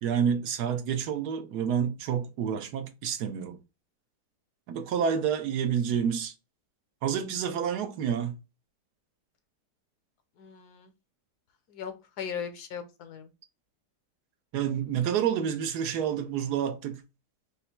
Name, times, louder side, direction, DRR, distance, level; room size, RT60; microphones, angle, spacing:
voice 1, 0.0-3.6 4.7-6.3 7.0-8.3 14.5-17.0, right 8 dB, 75° right, 1.2 m, -29 dB
voice 2, 10.4-10.9 11.7-13.3, left 7 dB, 75° left, 1.3 m, -38 dB
5.4 x 2.0 x 4.3 m
omnidirectional pair, 1.8 m